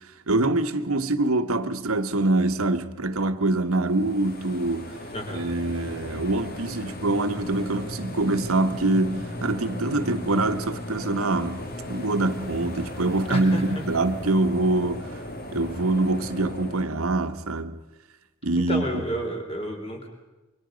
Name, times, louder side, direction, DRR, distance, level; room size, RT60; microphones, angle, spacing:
voice 1, 0.0-5.0 5.3-11.6 11.9-15.1 15.5-17.8 18.4-18.8, right 2 dB, 85° right, 1.3 m, -24 dB
sound 1, 3.8-16.9, left 1 dB, 45° left, 2.2 m, -37 dB
voice 2, 5.1-5.4 13.3-13.6 18.6-20.1, equal, 25° left, 3.4 m, -30 dB
27.0 x 24.0 x 5.2 m
head